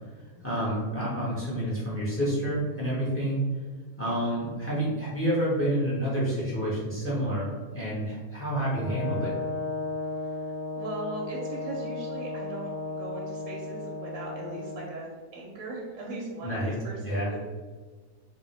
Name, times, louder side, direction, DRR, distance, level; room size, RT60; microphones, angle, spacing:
voice 1, 0.4-3.4 4.0-7.5 7.7-9.3 16.4-16.7 17.0-17.3, right 1 dB, 15° left, -7 dB, 0.5 m, -28 dB
Brass instrument, 8.8-14.9, left 3 dB, 85° left, 1.1 m, -35 dB
voice 2, 10.7-17.4, right 2 dB, 65° right, -2 dB, 0.9 m, -39 dB
2.6 x 2.0 x 3.9 m, 1.4 s
omnidirectional pair, 1.7 m